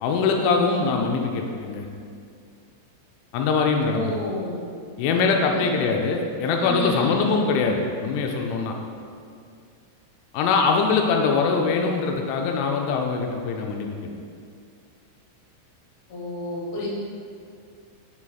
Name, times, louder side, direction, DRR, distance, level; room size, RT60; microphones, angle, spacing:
voice 1, 0.0-1.9 3.3-4.2 5.0-8.7 10.3-13.9, left 4 dB, 85° left, 2 dB, 2.7 m, -22 dB
voice 2, 3.9-4.6 5.4-5.6 6.6-7.3 16.1-16.9, left 1 dB, 70° left, -5 dB, 2.7 m, -30 dB
10.5 x 4.8 x 2.3 m, 2.3 s
omnidirectional pair, 5.9 m